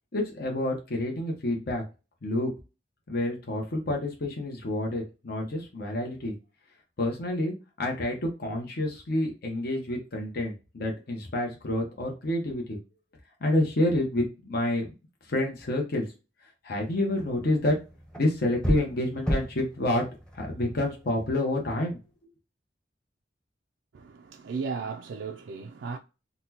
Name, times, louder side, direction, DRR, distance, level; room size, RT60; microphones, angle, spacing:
voice 1, 0.1-1.8 2.2-2.5 3.1-6.3 7.0-12.8 13.4-14.8 15.3-16.1 16.6-17.8 18.2-20.1 20.3-22.0, left 1 dB, 55° left, 0.8 m, -28 dB
sound 1, 16.7-21.6, equal, 5° left, 0.8 m, -35 dB
voice 2, 23.9-26.0, right 5 dB, 75° right, 0.4 m, -35 dB
4.0 x 2.1 x 2.8 m
head